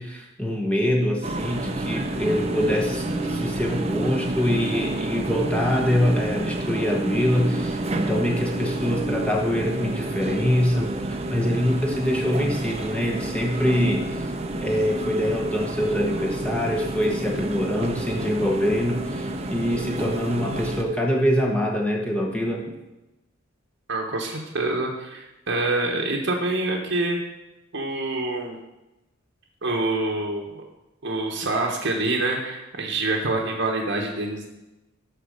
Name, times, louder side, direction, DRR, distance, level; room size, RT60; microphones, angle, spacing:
voice 1, 0.0-14.3 14.6-22.7, equal, 5° left, 0 dB, 0.9 m, -24 dB
sound 1, 1.2-20.8, right 2 dB, 30° right, 0.7 m, -29 dB
voice 2, 23.9-27.2 27.7-28.6 29.6-30.6 31.0-34.5, right 2 dB, 60° right, 0 dB, 1.1 m, -26 dB
11.5 x 4.2 x 6.4 m, 0.99 s
head